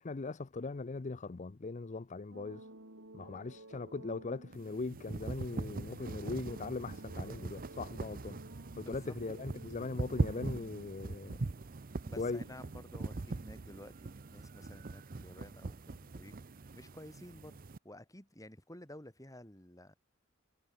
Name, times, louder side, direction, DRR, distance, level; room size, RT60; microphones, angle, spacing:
voice 1, 0.0-2.7 3.1-8.4 8.8-11.4 12.2-12.4, left 3 dB, 35° left, 0.6 m, -40 dB
sound 1, 2.3-10.9, right 1 dB, 70° right, 6.1 m, -54 dB
sound 2, 4.5-17.8, right 3 dB, 45° right, 0.6 m, -41 dB
voice 2, 8.8-9.2 12.0-17.6 17.8-20.0, left 1 dB, 15° left, 7.5 m, -53 dB
head